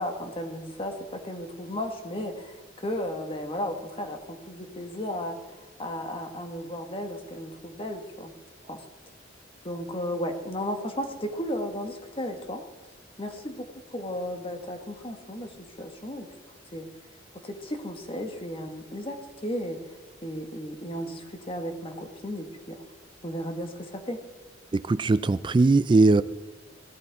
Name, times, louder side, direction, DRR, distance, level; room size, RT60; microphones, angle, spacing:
voice 1, 0.0-8.3 8.7-8.8 9.6-12.6 13.2-16.3 16.7-16.9 17.4-19.8 20.2-22.8 23.2-24.2, equal, 30° left, 5 dB, 1.6 m, -34 dB
voice 2, 24.7-26.2, right 3 dB, 25° right, 15 dB, 0.3 m, -20 dB
17.0 x 13.0 x 3.6 m, 1.3 s
head